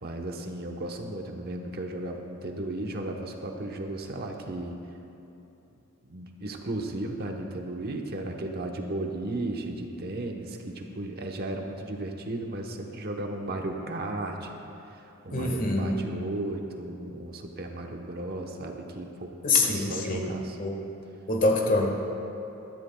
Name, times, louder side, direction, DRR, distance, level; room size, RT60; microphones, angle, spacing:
voice 1, 0.0-4.8 6.1-14.6 14.9-19.3 19.6-20.6, right 2 dB, 50° right, 2 dB, 1.0 m, -35 dB
voice 2, 15.3-16.0 19.4-20.8 21.3-21.9, left 2 dB, 40° left, 1 dB, 1.5 m, -25 dB
20.5 x 13.5 x 2.3 m, 2.9 s
head